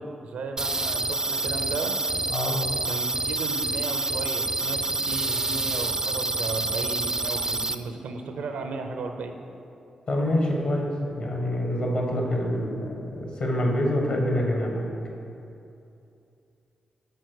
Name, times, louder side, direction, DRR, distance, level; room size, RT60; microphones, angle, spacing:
voice 1, 0.0-2.0 2.9-9.3, right 3 dB, 75° right, 5 dB, 0.6 m, -35 dB
sound 1, 0.6-7.7, right 2 dB, 25° right, 0.4 m, -27 dB
voice 2, 10.1-10.9 11.1-14.9, left 1 dB, 65° left, 0 dB, 1.5 m, -26 dB
5.8 x 4.4 x 6.4 m, 2.7 s
supercardioid pair, 40°, 2 cm